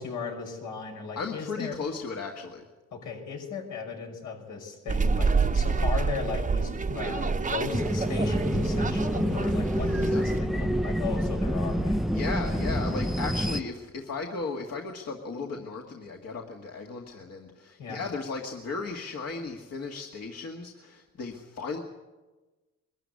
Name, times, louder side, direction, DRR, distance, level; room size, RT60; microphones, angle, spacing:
voice 1, 0.0-1.8 2.9-12.0 17.8-18.0, left 5 dB, 80° left, 1 dB, 6.0 m, -36 dB
voice 2, 1.2-2.7 9.7-10.2 12.1-21.8, left 4 dB, 55° left, 1 dB, 2.1 m, -36 dB
sound 1, 4.9-10.4, right 4 dB, 25° right, 1.0 m, -28 dB
sound 2, 7.7-13.6, equal, ahead, 0.7 m, -27 dB
22.0 x 13.5 x 9.8 m, 1.2 s
cardioid pair, 90°, 30 cm